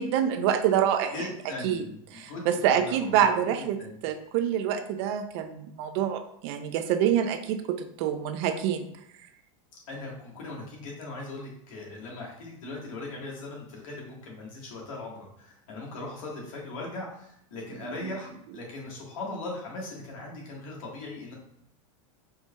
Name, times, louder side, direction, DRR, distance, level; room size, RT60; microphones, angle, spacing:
voice 1, 0.0-1.1 1.6-1.9 2.1-3.8 4.0-8.9, right 9 dB, 55° right, 8 dB, 0.4 m, -26 dB
voice 2, 1.1-3.5 3.8-4.0 9.9-21.3, left 2 dB, 85° left, -2 dB, 1.4 m, -39 dB
4.4 x 2.7 x 2.2 m, 0.72 s
supercardioid pair, 140°, 17 cm